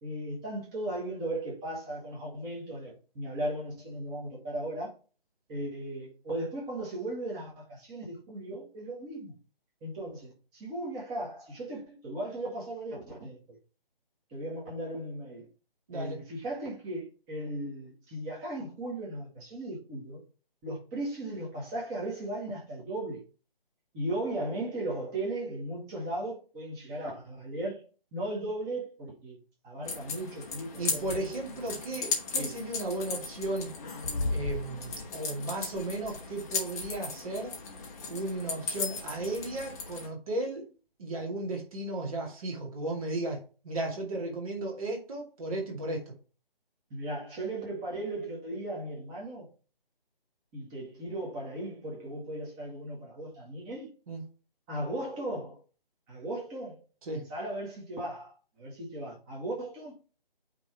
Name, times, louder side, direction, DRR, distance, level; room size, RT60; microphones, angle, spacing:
voice 1, 0.0-4.9 5.5-9.3 9.8-13.4 14.3-15.5 15.9-20.2 20.6-23.2 23.9-27.8 28.1-29.4 29.6-31.4 32.4-32.6 33.1-33.2 46.9-49.5 50.5-53.9 54.7-55.6 56.1-56.8 57.1-58.3 58.6-59.9, right 1 dB, 10° right, 1.9 m, -37 dB
voice 2, 15.9-16.2 30.8-33.7 34.3-37.6 38.1-40.7 41.0-46.1 54.1-54.2 57.1-57.3, right 2 dB, 35° right, 2.5 m, -35 dB
sound 1, 29.9-40.1, left 4 dB, 15° left, 1.2 m, -36 dB
9.1 x 3.7 x 4.7 m
figure-of-eight pair, 155°, 30 cm